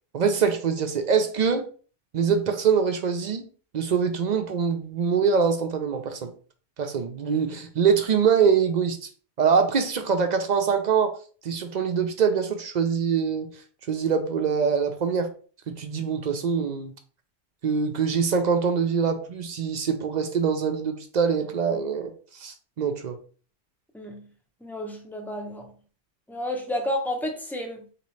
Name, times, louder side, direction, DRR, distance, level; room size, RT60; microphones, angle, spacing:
voice 1, 0.1-1.7 2.1-3.5 3.7-6.3 6.8-9.1 9.4-11.2 11.4-13.5 13.9-15.3 15.7-16.9 17.6-23.2, right 6 dB, 55° right, 0.5 m, -24 dB
voice 2, 23.9-24.3 24.6-25.7 26.3-27.8, left 1 dB, ahead, 0.4 m, -31 dB
3.9 x 2.9 x 3.1 m
omnidirectional pair, 1.2 m